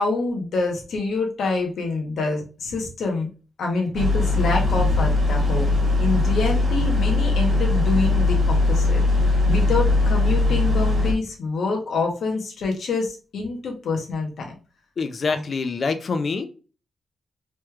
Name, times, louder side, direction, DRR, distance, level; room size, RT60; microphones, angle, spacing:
voice 1, 0.0-3.3 3.6-5.7 6.0-9.0 9.4-14.5 15.3-15.4, left 3 dB, 75° left, 1 dB, 0.8 m, -26 dB
sound 1, 3.9-11.1, left 2 dB, 40° right, 1.0 m, -20 dB
voice 2, 15.0-16.5, left 4 dB, 45° left, 8 dB, 0.3 m, -25 dB
3.1 x 2.2 x 3.0 m, 0.35 s
wide cardioid pair, 140°, 0 cm